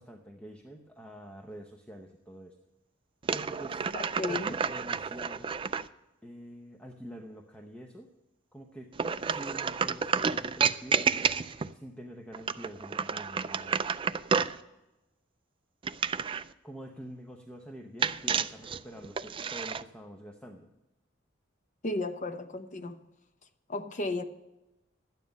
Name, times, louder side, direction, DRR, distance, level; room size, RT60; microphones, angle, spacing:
voice 1, 0.0-2.6 3.3-3.9 4.3-5.5 6.2-8.1 8.5-8.9 9.3-11.1 11.7-13.8 16.6-20.7, right 1 dB, 5° left, 0.8 m, -46 dB
sound 1, 3.2-5.9 8.9-11.7 12.3-14.6 15.8-16.5 18.0-19.8, right 6 dB, 25° right, 0.3 m, -30 dB
voice 2, 4.2-4.6 21.8-23.0 23.7-24.2, left 2 dB, 40° left, 0.8 m, -33 dB
12.0 x 9.2 x 5.3 m
head